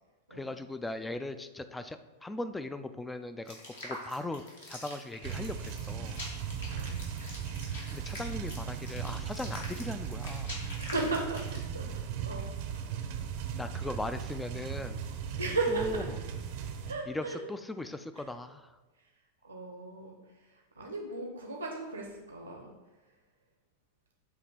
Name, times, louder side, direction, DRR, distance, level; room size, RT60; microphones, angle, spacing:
voice 1, 0.3-3.6 3.8-6.2 7.9-10.6 13.5-15.0 15.7-16.0 17.1-18.7, left 2 dB, 10° left, 11 dB, 0.3 m, -39 dB
sound 1, 3.5-11.8, left 1 dB, 65° left, 1.6 m, -45 dB
sound 2, 5.2-16.9, right 7 dB, 45° right, 0.6 m, -37 dB
voice 2, 10.8-12.9 15.4-16.0 16.9-17.4 18.2-18.3 19.4-22.7, right 3 dB, 85° right, 1 dB, 0.7 m, -36 dB
7.7 x 2.9 x 4.9 m, 1.2 s
figure-of-eight pair, 90°, 0 cm